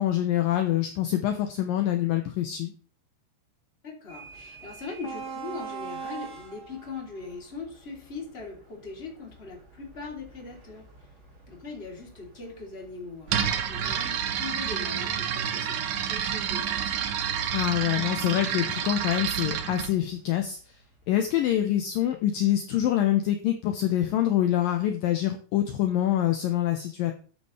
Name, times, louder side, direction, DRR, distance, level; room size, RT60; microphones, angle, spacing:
voice 1, 0.0-2.7 17.5-20.6 21.1-27.1, left 12 dB, 75° left, 5 dB, 2.1 m, -25 dB
voice 2, 3.8-10.9 11.5-17.2, left 4 dB, 15° left, -1 dB, 2.5 m, -40 dB
sound 1, 4.1-21.8, right 5 dB, 25° right, 3.0 m, -46 dB
sound 2, 13.3-19.9, right 9 dB, 75° right, 1.9 m, -29 dB
13.0 x 8.5 x 3.3 m, 0.40 s
omnidirectional pair, 5.1 m